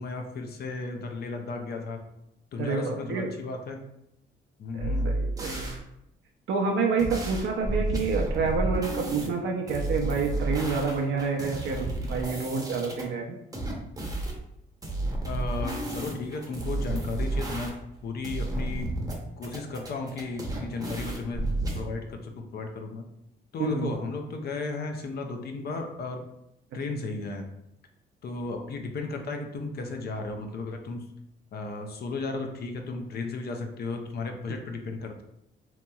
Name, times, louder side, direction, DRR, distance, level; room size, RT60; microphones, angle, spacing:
voice 1, 0.0-2.0 2.5-3.8 4.6-5.1 15.2-17.7 18.0-18.9 19.4-21.5 21.8-23.1 23.5-26.2 26.7-27.4 28.2-31.1 31.5-35.2, left 3 dB, 55° left, 4 dB, 0.5 m, -34 dB
voice 2, 2.6-3.3 4.7-5.7 6.5-13.4 23.6-23.9, right 4 dB, 70° right, 1 dB, 0.5 m, -28 dB
sound 1, 4.8-5.8 7.0-9.3 9.7-13.0 13.5-14.4 14.8-18.0 18.2-19.1 19.4-21.8, right 2 dB, 20° right, 0.7 m, -31 dB
2.8 x 2.8 x 2.3 m, 0.81 s
cardioid pair, 90°, 20 cm